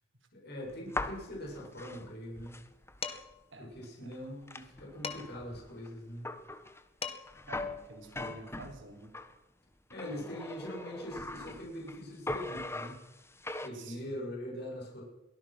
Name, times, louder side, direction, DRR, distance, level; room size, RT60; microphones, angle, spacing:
voice 1, 0.3-2.6 3.6-6.3 8.2-8.3 9.9-13.0 13.6-15.0, equal, 60° left, -2 dB, 7.7 m, -42 dB
sound 1, 0.7-3.3 3.8-3.9 4.1-9.3 9.9-12.0 12.3-13.7, left 2 dB, 15° left, 1.3 m, -41 dB
voice 2, 0.8-1.9 3.5-3.7 4.0-4.1 7.5-9.1 10.1-10.3 13.7-14.2, right 2 dB, 80° right, 4 dB, 4.7 m, -51 dB
Dishes pots and pans, 3.0-3.5 5.0-5.5 6.7-6.8 7.0-7.5, left 5 dB, 30° left, 2.1 m, -40 dB
23.5 x 18.0 x 6.3 m, 0.99 s
head